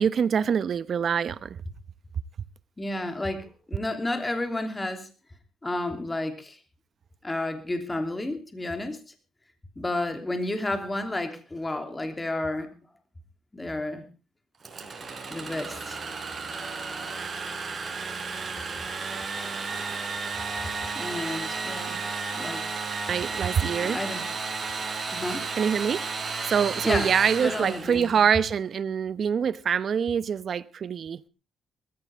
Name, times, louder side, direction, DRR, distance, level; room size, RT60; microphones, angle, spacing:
voice 1, 0.0-1.5 23.1-24.0 25.6-26.0 26.5-31.2, right 7 dB, 55° right, 0.8 m, -25 dB
voice 2, 2.8-5.1 5.6-6.6 7.2-9.0 9.8-12.7 13.5-14.1 15.3-16.0 20.9-22.0 22.3-22.6 23.8-24.2 25.1-25.5 26.8-27.1 27.4-28.2, left 2 dB, 15° left, 2.9 m, -31 dB
Engine / Sawing, 14.6-28.3, right 4 dB, 35° right, 4.5 m, -33 dB
20.5 x 14.5 x 3.5 m
cardioid pair, 90°, 0 cm